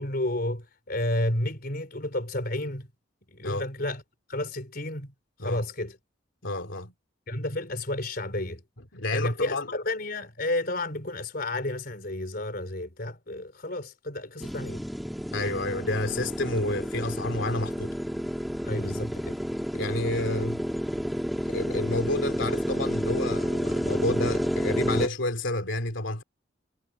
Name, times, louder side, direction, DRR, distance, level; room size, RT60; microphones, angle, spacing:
voice 1, 0.0-2.9 3.3-4.0 4.3-5.1 5.4-6.0 7.3-8.6 9.1-14.9 18.6-19.4, left 1 dB, 50° left, 4.1 m, -31 dB
voice 2, 6.4-6.9 8.9-9.6 15.3-17.9 19.7-20.6 21.4-26.2, left 2 dB, 75° left, 2.9 m, -30 dB
sound 1, 14.4-25.1, equal, ahead, 1.9 m, -30 dB
head